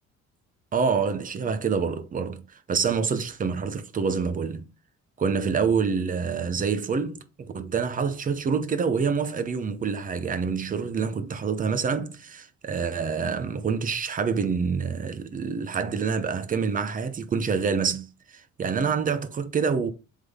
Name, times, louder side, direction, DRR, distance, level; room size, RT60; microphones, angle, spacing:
voice 1, 0.7-4.7 5.2-19.9, right 5 dB, 25° right, 0.7 m, -27 dB
7.7 x 3.7 x 3.6 m
cardioid pair, 150°, 30 cm